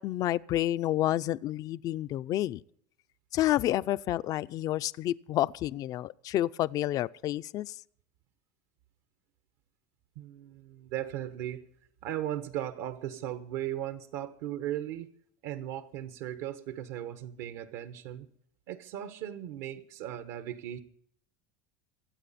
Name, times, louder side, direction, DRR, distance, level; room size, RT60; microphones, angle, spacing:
voice 1, 0.0-2.6 3.3-7.7, left 14 dB, 40° left, 0.4 m, -29 dB
voice 2, 10.1-11.7 12.0-15.1 15.4-18.3 18.7-20.8, right 12 dB, 70° right, 1.2 m, -37 dB
25.0 x 8.5 x 4.2 m
cardioid pair, 150°, 10 cm